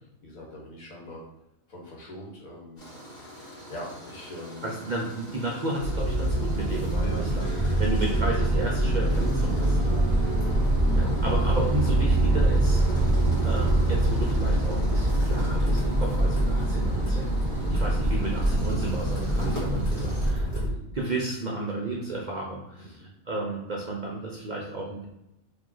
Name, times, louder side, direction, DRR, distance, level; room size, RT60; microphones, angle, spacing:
voice 1, 0.2-1.2 1.7-2.9 3.2-4.9 6.9-8.5 9.7-11.2 17.5-17.8 22.8-23.1, equal, 80° left, -2 dB, 1.6 m, -43 dB
Tools, 2.8-20.3, equal, 35° left, 1.3 m, -45 dB
voice 2, 4.6-7.5 7.8-9.8 10.9-12.8 13.4-25.1, right 2 dB, 45° right, -2 dB, 0.6 m, -33 dB
sound 1, 5.8-20.7, right 1 dB, 10° left, 1.2 m, -24 dB
3.0 x 2.9 x 3.7 m, 0.88 s
omnidirectional pair, 1.4 m